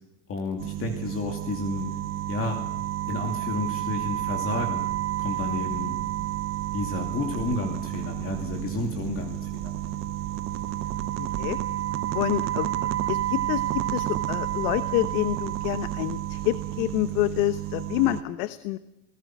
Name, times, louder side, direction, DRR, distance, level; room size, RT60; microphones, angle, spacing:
voice 1, 0.3-1.9 2.3-2.6 3.1-4.8 5.2-6.0 6.7-9.8, left 3 dB, 30° left, 2 dB, 2.6 m, -31 dB
sound 1, 0.6-18.2, right 14 dB, 25° right, 0.7 m, -30 dB
sound 2, 4.0-17.5, right 10 dB, 50° right, 3.8 m, -43 dB
voice 2, 11.2-11.6 12.1-12.7 13.1-18.8, left 17 dB, 65° left, 11 dB, 1.1 m, -27 dB
25.5 x 18.5 x 6.1 m, 0.95 s
supercardioid pair, 160°, 47 cm